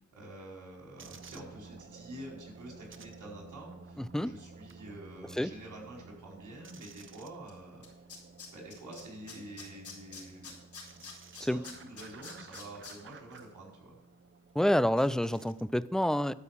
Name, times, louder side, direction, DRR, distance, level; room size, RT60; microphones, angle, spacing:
voice 1, 0.1-7.9 8.5-10.6 10.9-11.0 11.3-14.0, right 1 dB, 65° right, 4.7 m, -48 dB
sound 1, 1.0-15.7, right 4 dB, 40° right, 0.9 m, -53 dB
voice 2, 4.0-4.3 5.4-5.5 11.5-11.6 14.6-16.3, left 1 dB, ahead, 0.4 m, -28 dB
Tools, 7.5-7.6 7.8-9.0 9.3-12.9 13.3-13.4, left 5 dB, 60° left, 4.6 m, -46 dB
12.5 x 5.5 x 7.4 m
cardioid pair, 75°, 32 cm